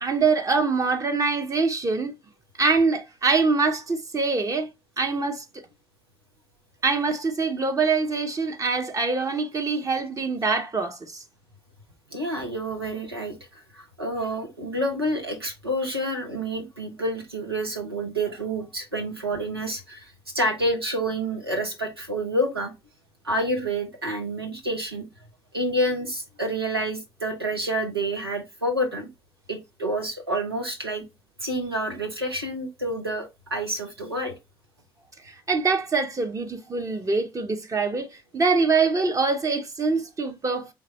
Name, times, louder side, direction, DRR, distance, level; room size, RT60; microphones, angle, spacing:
voice 1, 0.0-2.1 2.6-4.7 5.0-5.4 6.8-11.2 35.2-40.7, right 4 dB, 25° right, 1.1 m, -24 dB
voice 2, 12.1-22.7 23.2-25.0 25.5-29.1 29.5-31.0 31.4-34.3, right 1 dB, 90° right, 0.9 m, -28 dB
4.5 x 3.4 x 3.1 m
figure-of-eight pair, 50°, 12 cm